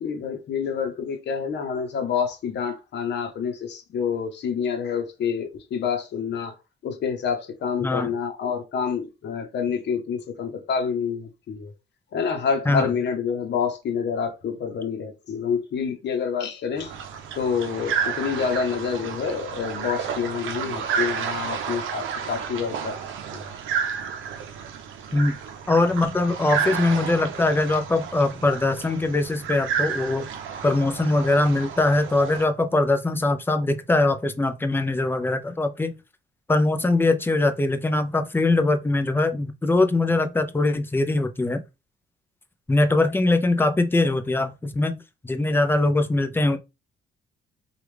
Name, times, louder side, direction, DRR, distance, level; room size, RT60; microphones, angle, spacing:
voice 1, 0.0-6.5 6.8-11.7 12.1-16.9 17.4-23.0 23.3-23.4, left 6 dB, 60° left, 0.8 m, -27 dB
sound 1, 16.8-32.5, right 7 dB, 80° right, 0.6 m, -31 dB
voice 2, 25.7-30.3 30.6-36.0 36.5-41.6 42.7-46.6, left 2 dB, 10° left, 0.5 m, -22 dB
3.0 x 2.4 x 3.3 m
cardioid pair, 90°, 20 cm